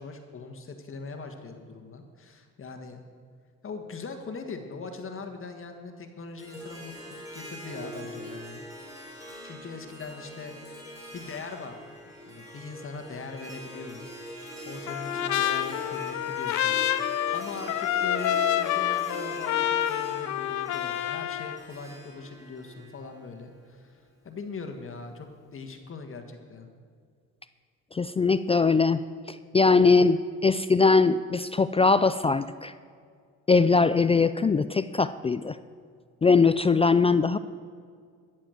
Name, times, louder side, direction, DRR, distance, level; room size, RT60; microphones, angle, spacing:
voice 1, 0.0-3.0 3.6-8.6 9.4-11.8 12.3-14.0 14.6-26.7, left 4 dB, 45° left, 5 dB, 1.7 m, -41 dB
Harp, 6.4-23.6, equal, 10° right, 4.0 m, -42 dB
Trumpet, 14.9-21.6, left 12 dB, 70° left, 0.7 m, -28 dB
voice 2, 27.9-32.7 33.5-35.6 36.2-37.4, left 4 dB, 20° left, 13 dB, 0.3 m, -21 dB
14.0 x 7.5 x 7.9 m, 2.1 s
cardioid pair, 90°, 30 cm